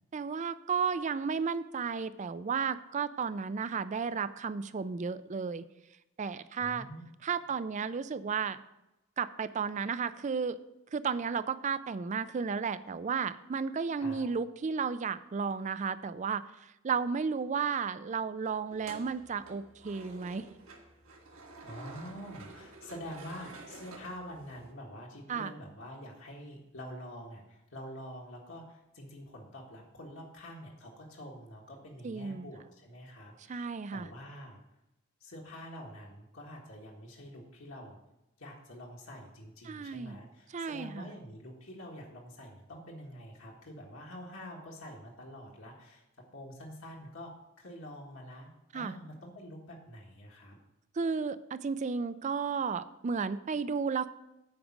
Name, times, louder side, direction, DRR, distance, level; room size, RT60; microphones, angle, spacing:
voice 1, 0.1-5.6 6.2-6.9 7.2-8.6 9.2-10.6 10.9-20.5 25.3-25.5 32.0-32.5 33.5-34.1 39.7-40.2 40.5-41.1 48.7-48.9 51.0-54.1, right 5 dB, 35° right, 14 dB, 0.4 m, -33 dB
voice 2, 6.6-7.1 14.0-14.2 21.6-34.6 35.2-38.0 38.4-46.0 46.3-50.5, equal, 65° left, -2 dB, 1.6 m, -46 dB
sound 1, 18.7-24.7, right 3 dB, 80° right, 1.7 m, -50 dB
8.6 x 5.0 x 7.3 m, 0.92 s
head